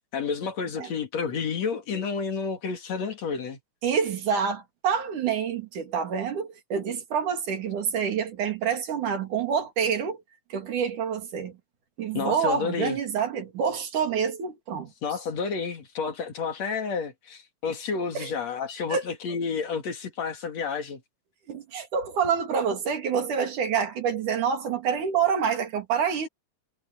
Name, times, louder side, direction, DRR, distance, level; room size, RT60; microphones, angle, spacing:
voice 1, 0.1-3.6 12.1-13.0 15.0-21.0, left 5 dB, 60° left, 3.2 m, -30 dB
voice 2, 3.8-10.2 10.5-11.6 12.0-14.9 18.2-18.3 18.9-19.0 21.5-26.3, right 7 dB, 75° right, 4.1 m, -27 dB
omnidirectional pair, 3.5 m